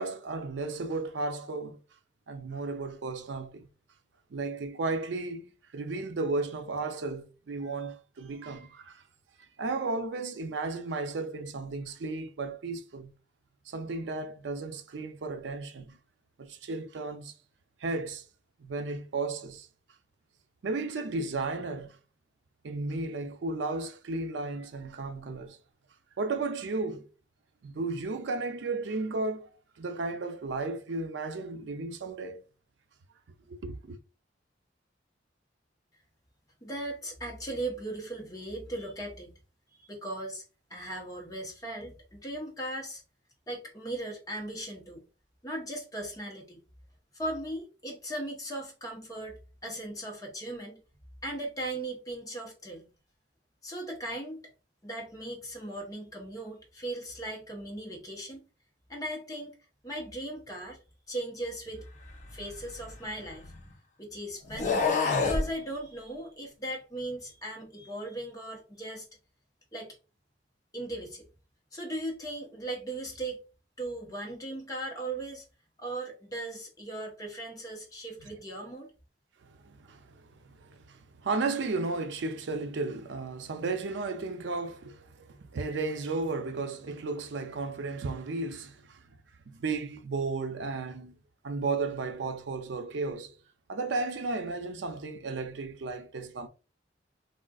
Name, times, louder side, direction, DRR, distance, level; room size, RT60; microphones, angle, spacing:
voice 1, 0.0-1.8 2.3-3.7 4.3-9.0 9.6-13.1 13.7-16.0 16.4-17.3 17.8-18.2 18.6-19.7 20.6-22.0 22.6-25.6 26.2-27.1 27.6-29.5 29.8-32.5 33.5-34.0 79.5-80.2 80.5-89.0 89.5-91.2 91.4-93.3 93.7-96.5, right 3 dB, 80° right, 0.5 m, -34 dB
voice 2, 36.6-39.4 39.7-40.4 40.7-43.0 43.5-45.0 45.4-46.6 47.1-50.8 51.2-52.9 53.6-54.5 54.8-58.4 58.9-59.5 59.8-60.8 61.1-61.9 62.3-63.5 64.0-64.8 65.2-69.0 69.7-69.9 70.7-71.2 71.7-73.4 73.8-75.4 75.8-78.9, right 1 dB, 20° left, 0.9 m, -38 dB
sound 1, 62.2-63.7 64.4-65.5, left 4 dB, 40° left, 0.7 m, -29 dB
3.6 x 2.3 x 2.3 m
head